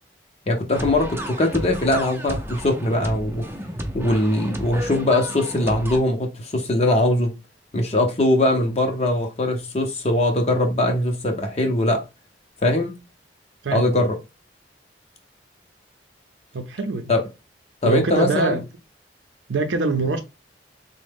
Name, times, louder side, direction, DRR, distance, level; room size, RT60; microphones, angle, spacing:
voice 1, 0.5-3.5 3.9-7.3 7.7-12.0 12.6-12.9 13.7-14.1 17.1-17.2 17.8-18.6, left 1 dB, 35° left, 0.6 m, -21 dB
sound 1, 0.7-6.0, equal, 15° right, 0.5 m, -32 dB
voice 2, 13.6-14.0 16.5-17.1 17.8-18.7 19.5-20.2, right 3 dB, 90° right, 0.5 m, -24 dB
3.6 x 2.1 x 3.5 m
head